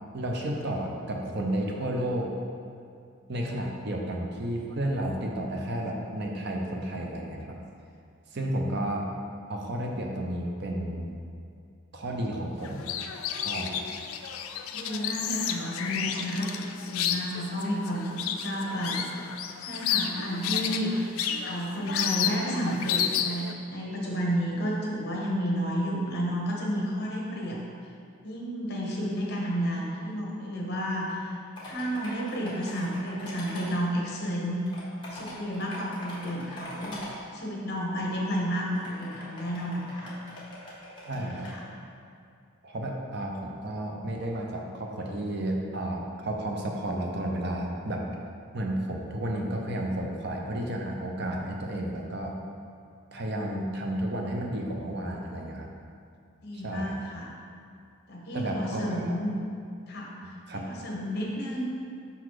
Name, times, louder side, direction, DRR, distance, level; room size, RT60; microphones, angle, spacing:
voice 1, 0.1-2.3 3.3-7.6 8.3-9.1 9.5-11.2 11.9-13.0 13.4-13.8 41.0-41.6 42.6-48.1 48.5-52.3 53.1-55.7 56.5-57.0 58.3-59.1 60.5-60.8, right 1 dB, 50° right, 0 dB, 0.6 m, -32 dB
sound 1, 12.6-23.5, left 8 dB, 80° left, 0.4 m, -31 dB
voice 2, 14.7-19.1 19.6-21.1 21.4-27.6 28.2-31.3 31.6-34.6 35.1-40.1 41.1-41.6 56.4-57.3 58.1-59.3 59.9-60.1 60.5-61.6, equal, 50° left, -2 dB, 1.0 m, -31 dB
sound 2, 31.6-33.7 34.5-37.1 38.0-38.1 38.7-41.5, left 1 dB, 25° left, 1.3 m, -43 dB
5.6 x 3.9 x 4.7 m, 2.4 s
head